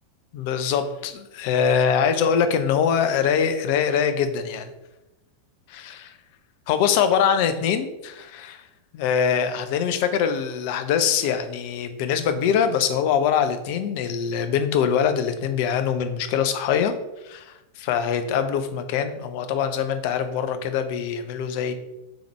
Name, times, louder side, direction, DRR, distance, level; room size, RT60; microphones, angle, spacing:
voice 1, 0.3-4.7 5.7-6.1 6.7-8.6 8.9-16.9 17.2-21.7, left 7 dB, 45° left, 9 dB, 0.4 m, -23 dB
3.5 x 3.5 x 4.4 m, 0.98 s
figure-of-eight pair, 90°, 0 cm